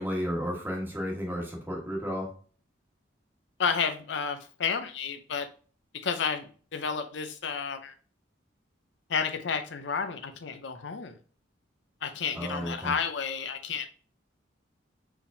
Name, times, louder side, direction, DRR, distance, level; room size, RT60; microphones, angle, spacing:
voice 1, 0.0-2.3 12.3-12.9, equal, 10° right, -1 dB, 1.3 m, -32 dB
voice 2, 3.6-5.5 6.0-7.9 9.1-11.1 12.0-13.9, left 6 dB, 65° left, 8 dB, 0.5 m, -31 dB
4.7 x 3.5 x 2.6 m, 0.40 s
head